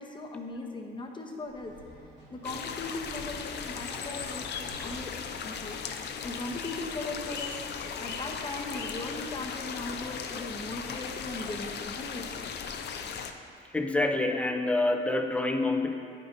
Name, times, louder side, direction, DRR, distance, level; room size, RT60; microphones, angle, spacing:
voice 1, 0.0-1.7 2.3-4.5 4.8-5.1 5.4-5.8 6.2-7.6 7.9-12.4, left 2 dB, 25° left, 1 dB, 0.8 m, -38 dB
sound 1, 1.4-6.3, right 1 dB, 65° right, 1.4 m, -51 dB
sound 2, 2.4-13.3, left 6 dB, 60° left, 0.5 m, -37 dB
voice 2, 13.7-15.9, left 2 dB, 5° left, 4 dB, 0.5 m, -27 dB
9.4 x 5.1 x 2.7 m, 2.4 s
cardioid pair, 90°, 20 cm